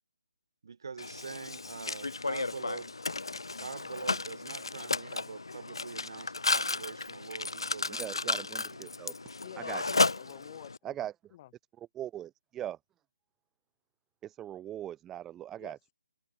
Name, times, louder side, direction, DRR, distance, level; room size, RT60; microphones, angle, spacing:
voice 1, 0.6-2.9 3.6-8.8, right 5 dB, 60° right, 2.3 m, -44 dB
Mechanisms, 1.0-10.8, left 3 dB, 80° left, 2.3 m, -33 dB
voice 2, 7.9-9.1 9.6-9.8 10.8-11.1 11.8-12.8 14.2-15.8, right 11 dB, 10° right, 0.5 m, -40 dB
voice 3, 9.4-11.0 11.3-11.5 15.6-15.9, left 15 dB, 30° left, 6.8 m, -49 dB
open air
figure-of-eight pair, 155°, 3 cm